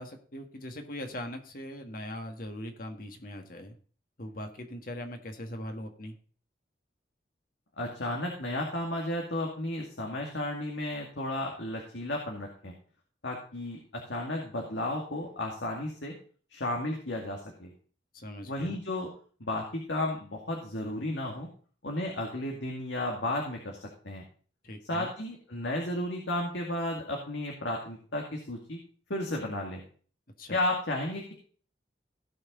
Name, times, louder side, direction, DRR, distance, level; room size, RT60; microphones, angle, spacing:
voice 1, 0.0-3.8 4.2-6.1 18.1-18.8 24.6-25.1 30.4-30.6, left 1 dB, 50° left, 4 dB, 1.7 m, -40 dB
voice 2, 7.8-12.7 13.2-16.1 16.5-17.7 18.5-19.1 19.4-21.5 21.8-24.2 24.9-28.8 29.1-29.8 30.5-31.3, left 1 dB, 90° left, 0 dB, 2.2 m, -33 dB
17.0 x 5.8 x 3.8 m, 0.42 s
head